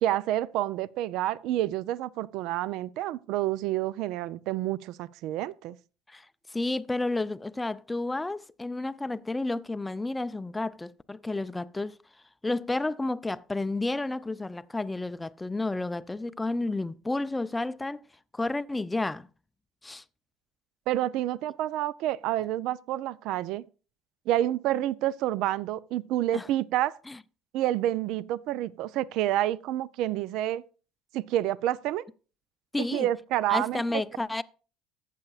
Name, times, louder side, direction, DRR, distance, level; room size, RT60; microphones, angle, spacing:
voice 1, 0.0-5.8 20.9-23.6 24.3-27.0 27.5-30.6 31.1-32.0 32.8-33.8, right 13 dB, 70° right, 0.4 m, -28 dB
voice 2, 6.1-12.0 12.4-18.0 18.3-19.3 19.8-20.0 26.3-26.5 27.1-27.2 32.7-33.1 33.5-34.4, left 2 dB, 10° left, 0.4 m, -31 dB
14.5 x 8.3 x 2.4 m
supercardioid pair, 100°, 0 cm